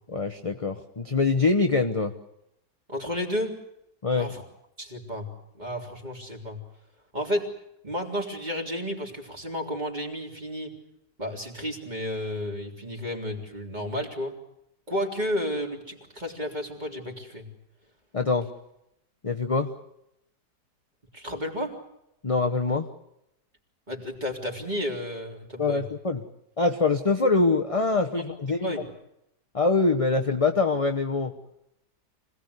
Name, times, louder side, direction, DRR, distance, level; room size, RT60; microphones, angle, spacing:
voice 1, 0.1-2.1 4.0-4.3 18.1-18.5 19.2-19.7 22.2-22.9 25.6-26.2 26.6-28.6 29.5-31.3, left 3 dB, 25° left, 5 dB, 0.8 m, -24 dB
voice 2, 2.9-3.5 4.1-4.4 4.8-5.3 5.6-6.6 7.1-7.5 7.8-10.7 11.2-14.3 14.9-17.5 21.1-21.8 23.9-25.8 28.1-28.9, equal, 25° right, 1 dB, 3.7 m, -32 dB
25.5 x 18.0 x 9.6 m, 0.80 s
omnidirectional pair, 1.8 m